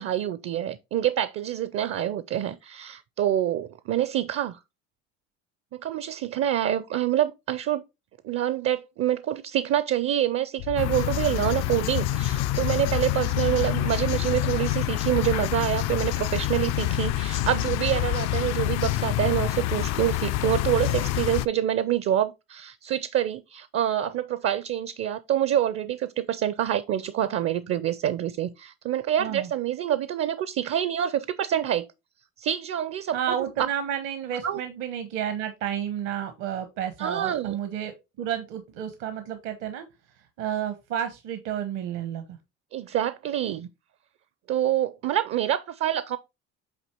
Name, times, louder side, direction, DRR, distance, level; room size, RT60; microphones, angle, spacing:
voice 1, 0.0-4.6 5.7-7.8 8.2-31.9 32.4-33.5 34.4-34.6 37.0-37.6 42.7-43.7 44.5-46.2, right 11 dB, 50° right, 0.6 m, -26 dB
sound 1, 10.6-18.3, left 13 dB, 85° left, 0.8 m, -37 dB
sound 2, 10.7-21.5, left 14 dB, 60° left, 0.4 m, -27 dB
voice 2, 29.2-29.5 33.1-39.8 40.4-42.2, right 9 dB, 75° right, 1.2 m, -31 dB
8.2 x 2.9 x 4.4 m
supercardioid pair, 85°, 30 cm